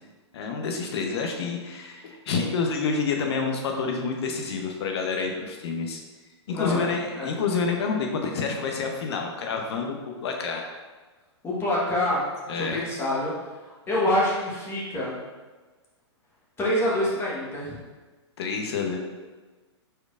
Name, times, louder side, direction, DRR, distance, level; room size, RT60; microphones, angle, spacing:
voice 1, 0.3-6.0 6.5-10.7 12.5-12.8 18.4-19.0, left 5 dB, 60° left, 2 dB, 0.8 m, -28 dB
voice 2, 6.5-6.9 7.2-7.3 11.4-12.2 12.5-13.3 13.9-15.2 16.6-17.8, left 1 dB, 15° left, -5 dB, 1.2 m, -26 dB
4.7 x 4.5 x 2.4 m, 1.3 s
hypercardioid pair, 125°, 15 cm